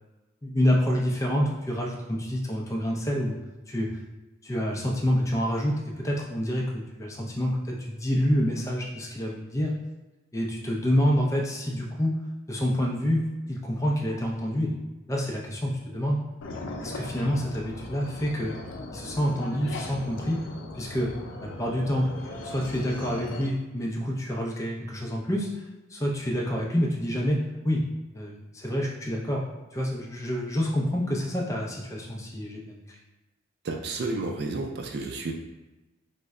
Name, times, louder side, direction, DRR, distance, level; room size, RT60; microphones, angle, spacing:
voice 1, 0.4-3.4 3.7-3.9 4.4-9.7 10.3-12.1 12.5-13.2 13.5-14.8 15.1-16.2 16.8-18.5 18.9-20.4 20.7-21.1 21.4-22.1 22.4-25.5 25.9-27.4 27.6-27.8 28.1-29.5 29.7-32.8, equal, 15° left, -1 dB, 0.4 m, -27 dB
sound 1, 16.4-23.5, left 2 dB, 80° left, 0.4 m, -39 dB
voice 2, 33.6-35.3, right 3 dB, 55° right, 3 dB, 0.4 m, -31 dB
3.2 x 2.1 x 3.6 m, 1.1 s
head